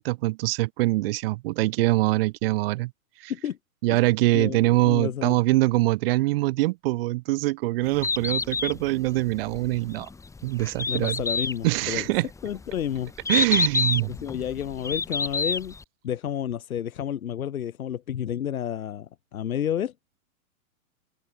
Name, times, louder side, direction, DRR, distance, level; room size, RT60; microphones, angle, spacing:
voice 1, 0.0-2.9 3.2-3.3 3.8-10.1 10.4-11.2 11.6-12.3 13.3-14.1, right 20 dB, 40° right, 3.2 m, -23 dB
voice 2, 4.3-5.4 10.9-12.1 12.4-13.1 14.1-15.7 16.0-19.9, left 10 dB, 75° left, 7.6 m, -30 dB
Bird, 7.8-15.8, left 4 dB, 5° left, 6.4 m, -29 dB
hypercardioid pair, 155°, 43 cm